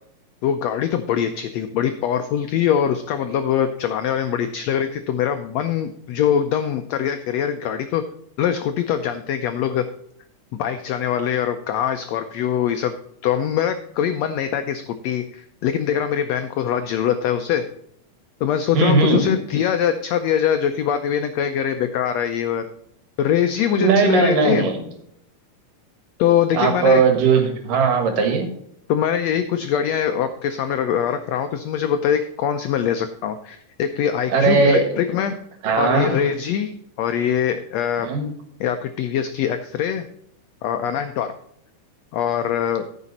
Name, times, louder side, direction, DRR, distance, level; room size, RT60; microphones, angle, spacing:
voice 1, 0.4-8.0 8.4-9.8 10.5-12.9 13.2-17.6 18.4-22.6 23.2-24.7 26.2-27.0 28.9-35.3 35.8-36.7 37.0-38.1 38.6-40.1 40.6-41.3 42.1-42.9, left 9 dB, 85° left, 8 dB, 1.5 m, -23 dB
voice 2, 18.7-19.3 23.8-24.8 26.5-28.5 34.3-34.9 35.6-36.2 38.0-38.2, right 4 dB, 85° right, 6 dB, 3.3 m, -18 dB
13.5 x 6.2 x 4.1 m, 0.72 s
omnidirectional pair, 3.8 m